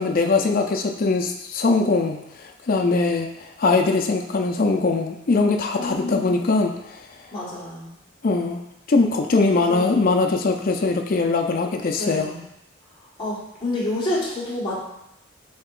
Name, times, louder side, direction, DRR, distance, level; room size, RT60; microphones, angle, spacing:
voice 1, 0.0-7.0 8.2-8.6 8.9-12.3, left 3 dB, 40° left, 3 dB, 0.4 m, -21 dB
voice 2, 5.8-6.3 7.3-7.9 9.5-10.1 12.0-12.4 13.2-14.8, left 1 dB, 25° left, -7 dB, 1.4 m, -29 dB
7.2 x 2.9 x 2.4 m, 0.82 s
head